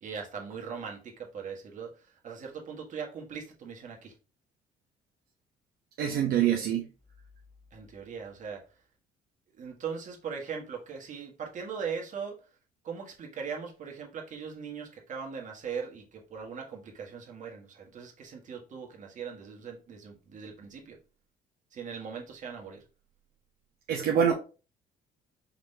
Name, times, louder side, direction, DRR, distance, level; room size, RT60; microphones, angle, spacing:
voice 1, 0.0-4.1 7.7-8.6 9.6-12.4 12.8-21.0 21.7-22.8, right 6 dB, 50° right, 1.5 m, -40 dB
voice 2, 6.0-6.8 23.9-24.3, right 9 dB, 65° right, 0.7 m, -25 dB
4.8 x 3.7 x 2.7 m
cardioid pair, 110°, 17 cm